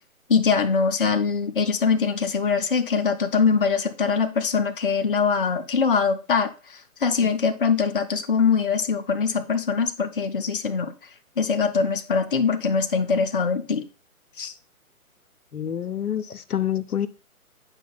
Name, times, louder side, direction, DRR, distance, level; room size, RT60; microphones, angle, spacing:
voice 1, 0.3-10.9 11.4-13.8 14.4-14.5, left 5 dB, 40° left, 0.5 m, -23 dB
voice 2, 15.5-17.1, left 10 dB, 85° left, 0.6 m, -27 dB
8.9 x 5.0 x 2.2 m
figure-of-eight pair, 135°, 44 cm